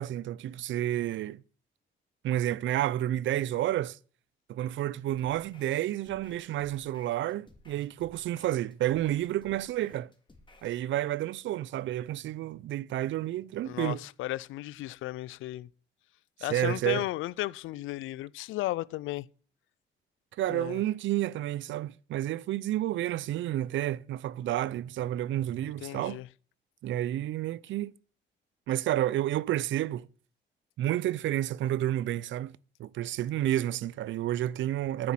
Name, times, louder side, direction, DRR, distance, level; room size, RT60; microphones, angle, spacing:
voice 1, 0.0-1.4 2.2-4.0 4.5-10.1 10.6-14.0 16.5-17.1 20.4-26.2 26.8-27.9 28.7-30.1 30.8-32.5 32.8-35.1, right 13 dB, 70° right, 0.5 m, -30 dB
sound 1, 5.2-10.8, left 2 dB, 25° left, 2.6 m, -58 dB
voice 2, 13.6-15.7 16.4-19.3 20.5-20.8 25.6-26.3, left 16 dB, 85° left, 0.5 m, -35 dB
9.6 x 7.3 x 7.6 m
cardioid pair, 90°, 20 cm